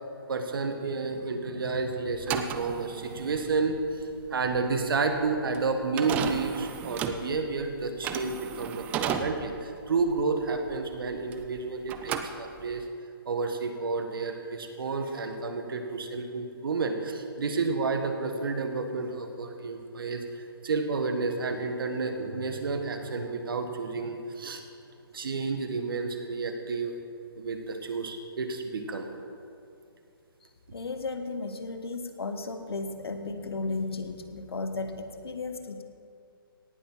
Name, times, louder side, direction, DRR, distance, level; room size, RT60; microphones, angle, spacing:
voice 1, 0.3-4.0 4.3-12.8 13.3-24.6 25.1-26.9 27.4-29.1, right 4 dB, 65° right, 6 dB, 1.7 m, -31 dB
sound 1, 2.1-11.6 11.9-12.9, right 8 dB, 10° right, 0.4 m, -35 dB
voice 2, 30.7-35.8, left 3 dB, 85° left, 8 dB, 1.4 m, -34 dB
18.0 x 7.2 x 5.7 m, 2.5 s
hypercardioid pair, 155°, 13 cm